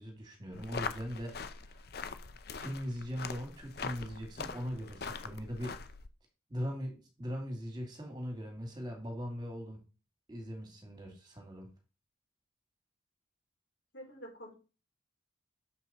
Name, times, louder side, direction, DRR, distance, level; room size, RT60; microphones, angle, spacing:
voice 1, 0.0-1.9 2.5-5.7 6.5-9.8 10.3-11.7, equal, 20° right, 2 dB, 2.3 m, -40 dB
sound 1, 0.5-6.1, left 5 dB, 50° left, 0.6 m, -42 dB
voice 2, 13.9-14.5, equal, 70° left, -1 dB, 3.8 m, -47 dB
6.9 x 5.5 x 4.2 m, 0.32 s
head